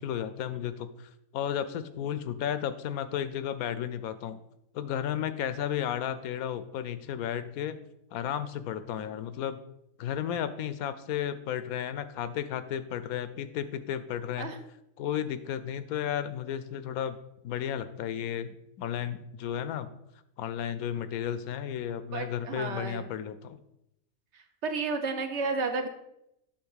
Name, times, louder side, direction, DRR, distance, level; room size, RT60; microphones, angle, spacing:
voice 1, 0.0-4.4 4.7-7.8 8.1-9.6 10.0-14.5 15.0-17.2 17.4-19.9 20.4-23.6, left 9 dB, 90° left, 12 dB, 1.0 m, -33 dB
voice 2, 22.1-23.1 24.3-25.9, right 4 dB, 60° right, 6 dB, 0.9 m, -32 dB
8.5 x 2.8 x 6.3 m, 0.82 s
omnidirectional pair, 1.5 m